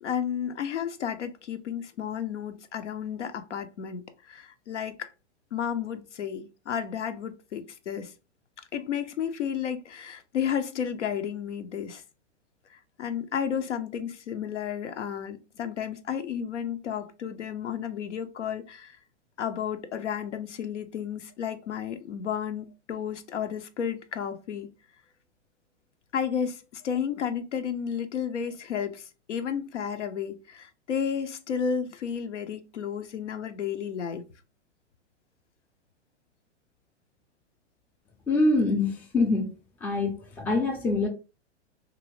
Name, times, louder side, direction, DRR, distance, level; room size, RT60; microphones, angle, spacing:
voice 1, 0.0-5.1 5.5-8.1 8.7-12.0 12.7-19.0 19.4-24.7 26.1-34.2, left 8 dB, 80° left, 0.6 m, -32 dB
voice 2, 38.3-39.5 39.8-41.1, left 2 dB, 5° left, 0.3 m, -24 dB
2.6 x 2.5 x 3.0 m
hypercardioid pair, 110°, 35 cm